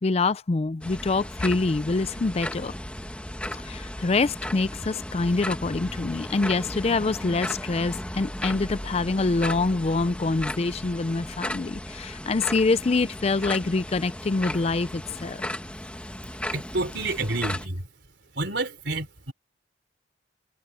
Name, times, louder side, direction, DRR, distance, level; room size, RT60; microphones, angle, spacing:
voice 1, 0.0-2.7 3.7-15.5, left 3 dB, 35° left, 0.4 m, -25 dB
sound 1, 0.8-17.7, left 1 dB, 5° left, 1.3 m, -35 dB
voice 2, 16.5-17.8 18.4-19.3, right 2 dB, 65° right, 4.4 m, -29 dB
head